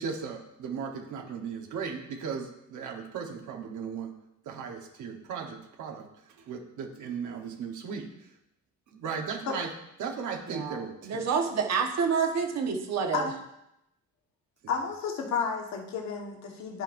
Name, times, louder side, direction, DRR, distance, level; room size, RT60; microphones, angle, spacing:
voice 1, 0.0-4.1 4.5-6.1 6.4-8.1 8.9-9.7 10.0-11.2, right 6 dB, 80° right, 2 dB, 1.2 m, -36 dB
voice 2, 10.5-13.2, right 6 dB, 60° right, 3 dB, 1.3 m, -28 dB
voice 3, 14.7-16.8, left 5 dB, 65° left, 0 dB, 1.5 m, -31 dB
12.5 x 5.4 x 2.6 m, 0.82 s
cardioid pair, 160°, 30 cm